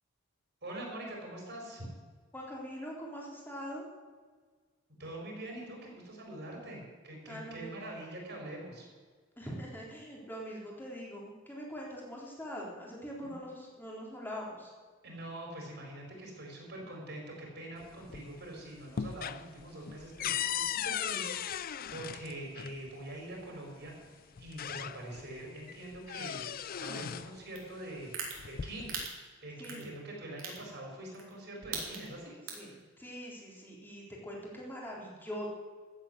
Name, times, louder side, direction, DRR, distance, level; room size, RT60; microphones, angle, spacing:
voice 1, 0.6-1.9 5.0-8.9 13.2-13.3 15.0-26.4 26.8-28.1 28.5-29.0 29.4-32.4, right 1 dB, 55° right, -1 dB, 4.5 m, -44 dB
voice 2, 2.3-3.9 7.3-7.8 9.4-14.7 29.6-29.9 32.5-35.5, equal, 10° left, -3 dB, 3.6 m, -43 dB
sound 1, 17.8-18.5 18.8-22.8 23.9-24.0 24.4-25.3 25.7-27.3 28.3-29.1, left 9 dB, 45° left, 0.4 m, -37 dB
sound 2, 27.6-27.7 28.1-28.3 28.9-29.1 29.6-29.8 30.4-30.6 31.1-31.3 31.6-32.1 32.5-32.7, right 8 dB, 75° right, 3.3 m, -37 dB
15.0 x 8.3 x 8.0 m, 1.5 s
head